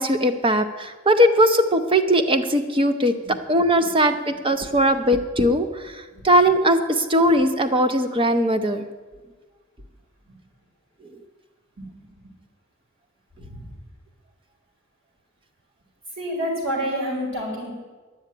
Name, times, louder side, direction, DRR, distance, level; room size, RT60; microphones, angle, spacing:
voice 1, 0.0-8.8, equal, 25° right, 9 dB, 0.7 m, -20 dB
voice 2, 11.8-12.1 13.3-13.7 16.2-17.7, equal, 60° right, -4 dB, 5.1 m, -29 dB
11.0 x 7.3 x 9.0 m, 1.4 s
head